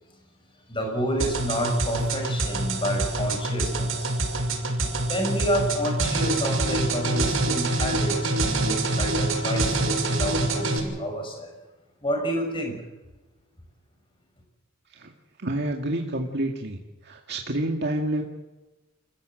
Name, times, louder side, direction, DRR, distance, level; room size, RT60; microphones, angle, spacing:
voice 1, 0.7-4.1 4.9-11.5 12.0-12.8, equal, 25° left, 3 dB, 6.0 m, -29 dB
sound 1, 1.2-10.8, right 2 dB, 80° right, 6.2 m, -26 dB
voice 2, 15.4-16.8 17.0-18.2, right 1 dB, 55° right, 1 dB, 2.1 m, -28 dB
28.5 x 15.5 x 7.9 m, 1.2 s
head